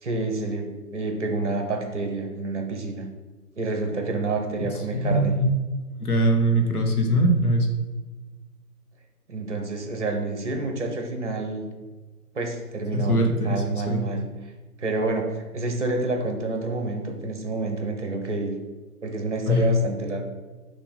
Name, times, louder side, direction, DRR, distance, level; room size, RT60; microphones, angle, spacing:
voice 1, 0.0-3.1 3.6-5.4 9.3-11.7 12.3-14.3 14.8-18.5 19.0-20.2, right 3 dB, 50° right, 4 dB, 1.1 m, -28 dB
voice 2, 4.9-5.5 6.0-7.7 12.9-14.0 19.5-19.7, right 1 dB, 70° left, 2 dB, 1.3 m, -22 dB
6.3 x 2.9 x 5.4 m, 1.3 s
figure-of-eight pair, 140°, 46 cm